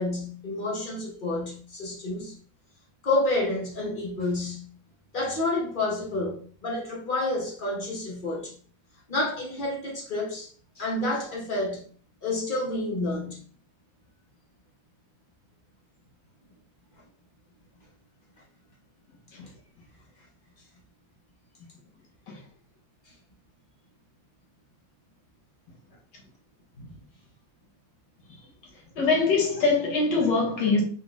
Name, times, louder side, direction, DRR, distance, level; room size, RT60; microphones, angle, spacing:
voice 1, 0.0-2.3 3.0-4.7 5.1-6.4 6.6-8.5 9.1-10.5 10.8-11.8 12.2-13.4 26.8-26.9, left 2 dB, 50° left, 0.6 m, -29 dB
voice 2, 29.0-30.8, left 3 dB, 70° left, 1.5 m, -23 dB
4.0 x 3.8 x 2.4 m
omnidirectional pair, 2.1 m